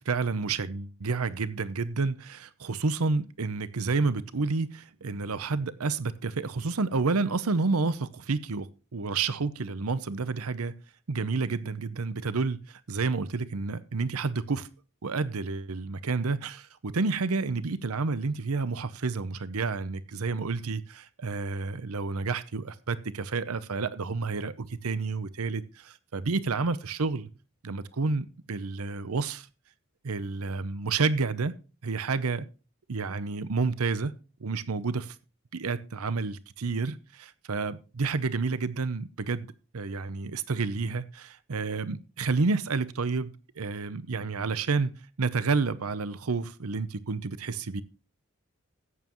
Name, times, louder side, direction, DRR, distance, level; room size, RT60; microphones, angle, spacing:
voice 1, 0.1-10.7 11.1-14.7 15.0-27.3 27.6-29.5 30.0-31.5 31.8-32.4 32.9-34.1 34.4-35.2 35.5-44.9 45.2-47.8, right 4 dB, 80° right, 0.7 m, -30 dB
14.0 x 9.3 x 3.0 m
head